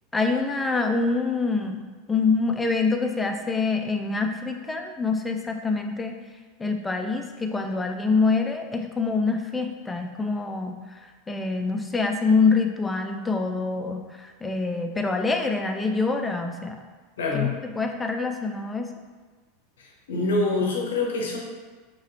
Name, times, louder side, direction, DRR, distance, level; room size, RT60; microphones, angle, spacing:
voice 1, 0.1-6.2 6.6-16.8 17.3-17.5 17.8-18.9, left 4 dB, 15° left, 4 dB, 0.3 m, -25 dB
voice 2, 17.2-17.5 19.8-21.4, left 3 dB, 85° left, 0 dB, 0.6 m, -25 dB
3.0 x 2.7 x 2.7 m, 1.3 s
hypercardioid pair, 100°, 0 cm